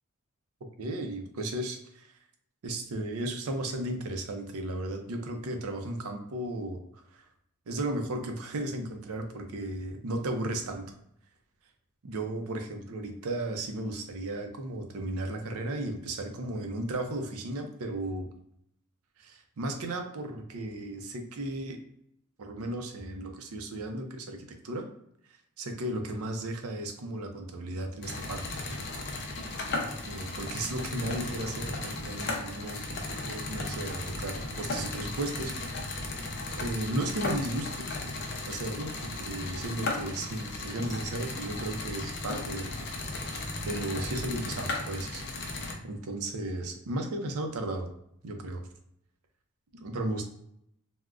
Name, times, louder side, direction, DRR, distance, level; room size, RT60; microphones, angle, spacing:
voice 1, 0.8-2.1 2.6-6.8 7.1-7.2 7.7-10.9 12.0-18.3 19.2-21.8 22.4-24.4 24.6-24.8 25.3-28.6 30.0-35.5 36.5-37.9 38.5-42.7 43.6-45.2 45.8-47.9 48.2-48.7 49.7-50.2, right 1 dB, 75° right, 5 dB, 0.5 m, -35 dB
sound 1, 28.0-45.7, left 2 dB, 50° left, 0.5 m, -36 dB
3.5 x 2.1 x 2.4 m, 0.74 s
head